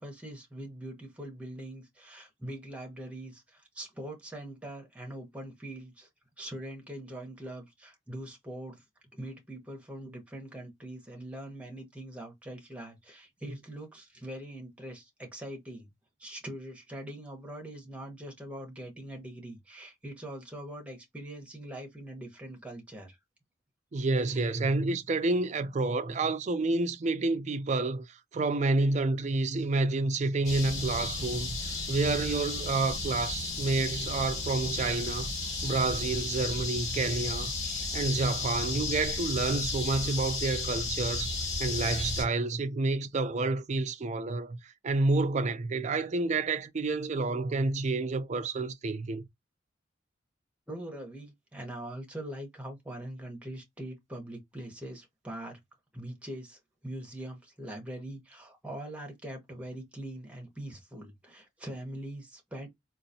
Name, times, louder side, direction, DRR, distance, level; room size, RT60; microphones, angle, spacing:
voice 1, 0.0-6.1 6.4-8.8 9.1-15.9 16.2-23.2 24.3-24.4 50.7-55.6 55.9-62.7, right 1 dB, 5° right, 1.0 m, -42 dB
voice 2, 23.9-35.3 35.6-41.3 41.6-49.2, right 3 dB, 35° right, 0.4 m, -29 dB
sound 1, 30.4-42.2, left 3 dB, 40° left, 2.3 m, -34 dB
3.9 x 2.5 x 2.7 m
head